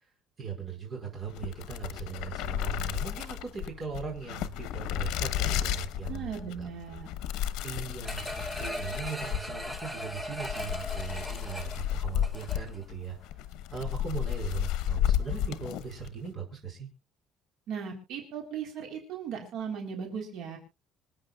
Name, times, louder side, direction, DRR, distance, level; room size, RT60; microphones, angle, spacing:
voice 1, 0.4-6.7 7.6-13.2 13.7-16.9, right 6 dB, 30° right, 1 dB, 4.7 m, -39 dB
sound 1, 1.3-16.2, left 11 dB, 85° left, 1.0 m, -33 dB
voice 2, 6.1-7.1 17.7-20.6, right 7 dB, 60° right, 2 dB, 3.8 m, -37 dB
sound 2, 8.0-12.8 13.2-13.3, equal, 5° right, 0.9 m, -38 dB
26.0 x 8.9 x 2.4 m, 0.28 s
cardioid pair, 170°, 0 cm